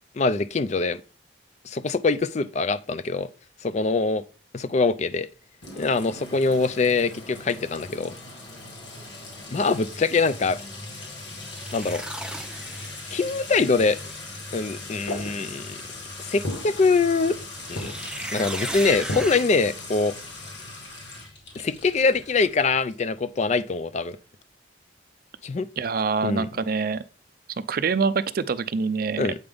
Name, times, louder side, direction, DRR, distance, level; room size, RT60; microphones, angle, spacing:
voice 1, 0.2-1.0 1.7-3.3 3.6-4.2 4.5-5.3 5.8-8.1 9.5-10.6 11.7-12.0 13.1-14.0 14.5-15.8 16.2-17.4 17.7-17.9 18.3-20.1 21.6-24.2 25.4-25.7 26.2-26.5 29.2-29.3, left 4 dB, 35° left, 0.4 m, -23 dB
Sink (filling or washing) / Trickle dribble / Fill (with liquid), 5.6-23.1, left 2 dB, 65° left, 2.0 m, -40 dB
sound 1, 6.5-6.8 11.2-13.3 13.7-14.4 17.4-19.4, right 1 dB, 5° right, 0.7 m, -36 dB
sound 2, 15.1-15.9 16.4-17.5 17.8-18.3 19.1-19.6, left 1 dB, 85° left, 1.3 m, -34 dB
voice 2, 25.8-27.0 27.7-29.3, right 5 dB, 50° right, 0.4 m, -25 dB
7.9 x 5.2 x 3.4 m
head